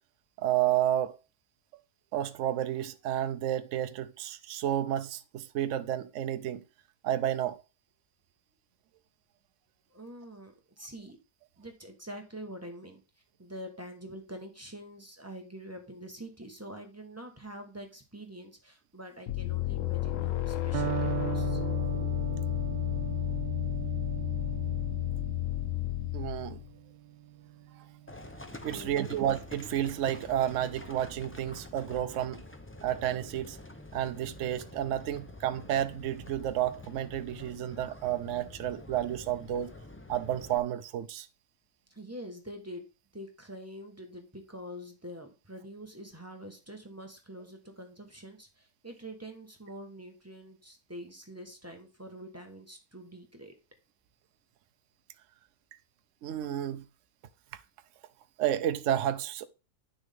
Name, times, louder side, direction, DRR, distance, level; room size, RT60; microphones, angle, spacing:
voice 1, 0.4-1.2 2.1-6.6 7.0-7.6 26.1-26.6 28.6-32.4 32.8-33.6 33.9-39.7 40.1-41.3 56.2-56.8 58.4-59.5, right 11 dB, 65° right, 0.9 m, -31 dB
voice 2, 9.9-11.2 11.6-13.0 13.4-21.6 28.7-29.4 41.9-42.8 43.1-53.5, equal, 10° right, 1.2 m, -45 dB
sound 1, 19.3-26.7, left 16 dB, 65° left, 0.9 m, -32 dB
Electric guitar, 20.7-28.6, right 12 dB, 85° right, 1.2 m, -38 dB
Livestock farm animals working animals, 28.1-40.6, left 2 dB, 15° left, 0.4 m, -47 dB
9.8 x 6.3 x 3.5 m
omnidirectional pair, 1.6 m